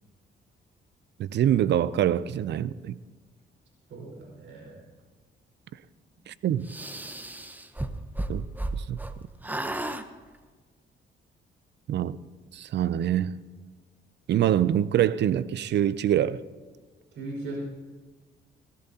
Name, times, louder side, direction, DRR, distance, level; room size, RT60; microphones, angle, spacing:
voice 1, 1.2-3.0 6.3-6.7 8.3-8.5 8.7-9.0 11.9-12.2 12.5-13.4 14.3-16.4, right 11 dB, 60° right, 0.5 m, -25 dB
voice 2, 3.9-4.8 17.1-17.6, right 2 dB, 75° right, 5.2 m, -38 dB
sound 1, 6.7-9.1 9.4-10.0, right 1 dB, 10° right, 0.8 m, -33 dB
17.5 x 16.0 x 2.8 m
cardioid pair, 90°, 20 cm